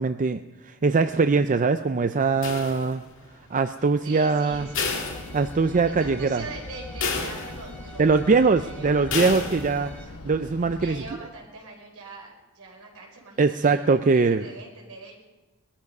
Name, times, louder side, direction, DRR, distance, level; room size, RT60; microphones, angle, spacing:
voice 1, 0.0-3.0 3.5-4.7 5.3-6.4 8.0-9.9 10.2-11.0 13.4-14.4, right 4 dB, 35° right, 9 dB, 0.5 m, -22 dB
sound 1, 2.4-3.2 4.7-5.9 6.3-6.4 7.0-7.9 9.1-9.9, left 4 dB, 60° left, 2.7 m, -31 dB
voice 2, 3.8-5.1 5.9-10.1 10.8-15.2, right 3 dB, 70° right, 0 dB, 4.9 m, -43 dB
Bowed string instrument, 4.1-10.0, equal, 5° left, 2.1 m, -49 dB
sound 2, 4.5-11.1, left 2 dB, 80° left, 1.1 m, -41 dB
20.5 x 13.0 x 5.4 m, 1.1 s
head